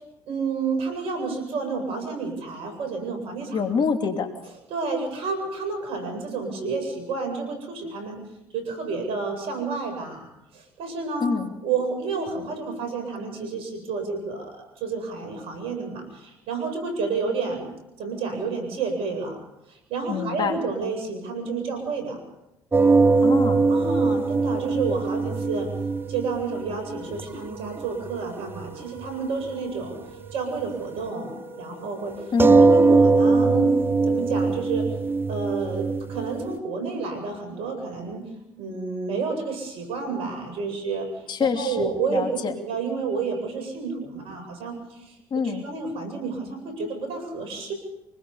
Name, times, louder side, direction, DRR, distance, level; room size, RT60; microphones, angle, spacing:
voice 1, 0.3-3.6 4.7-8.2 8.5-10.3 10.5-11.4 11.6-17.7 18.0-19.4 19.7-22.2 23.7-25.7 26.1-30.0 30.3-32.1 32.5-33.7 34.0-34.8 35.3-38.2 38.6-41.1 41.4-42.3 42.6-45.1 45.6-47.7, right 4 dB, 65° right, 5 dB, 7.9 m, -30 dB
voice 2, 3.5-4.3 11.2-11.5 20.1-20.6 23.2-23.7 32.3-32.7 41.3-42.5 45.3-45.6, left 5 dB, 45° left, 4 dB, 2.9 m, -26 dB
sound 1, 22.7-27.8 28.1-28.2 28.6-28.7 29.0-29.1 32.4-36.6, right 4 dB, 20° right, 0.9 m, -21 dB
Wind instrument woodwind instrument, 22.9-33.0, right 2 dB, 90° right, 2.8 m, -44 dB
25.5 x 20.5 x 5.7 m, 0.89 s
hypercardioid pair, 65°, 10 cm